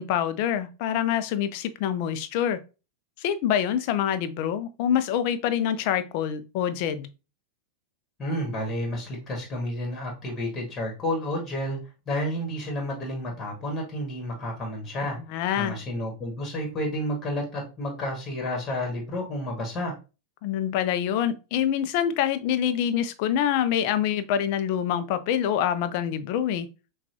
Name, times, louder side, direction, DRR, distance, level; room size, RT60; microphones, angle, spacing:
voice 1, 0.0-2.6 3.2-7.1 15.3-15.7 20.4-26.7, left 9 dB, 45° left, 0.5 m, -26 dB
voice 2, 8.2-11.8 12.0-15.2 15.5-19.9, left 1 dB, 20° left, 1.7 m, -30 dB
5.9 x 2.4 x 2.7 m
figure-of-eight pair, 90°, 0 cm